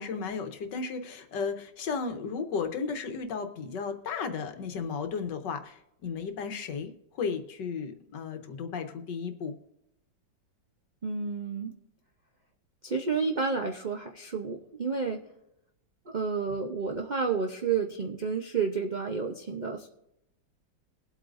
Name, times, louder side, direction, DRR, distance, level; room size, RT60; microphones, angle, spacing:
voice 1, 0.0-9.5, left 5 dB, 70° left, 7 dB, 1.6 m, -34 dB
voice 2, 11.0-11.7 12.8-15.2 16.1-19.9, right 5 dB, 65° right, 2 dB, 0.4 m, -30 dB
21.5 x 8.3 x 2.6 m, 0.84 s
omnidirectional pair, 2.1 m